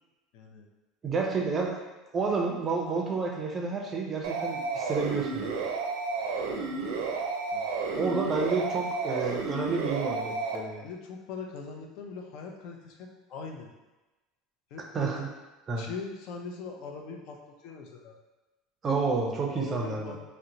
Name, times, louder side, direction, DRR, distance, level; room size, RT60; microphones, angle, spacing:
voice 1, 0.3-0.7 7.5-7.7 10.8-13.7 14.7-15.2 15.8-18.2 19.5-20.2, left 4 dB, 55° left, 2 dB, 0.5 m, -41 dB
voice 2, 1.0-1.8 2.1-5.5 8.0-10.9 14.9-15.3 15.7-15.8 18.8-20.2, right 4 dB, 25° right, 1 dB, 0.5 m, -30 dB
sound 1, 4.2-10.6, right 4 dB, 85° right, 0.4 m, -32 dB
2.8 x 2.1 x 3.8 m, 1.1 s
cardioid pair, 155°, 0 cm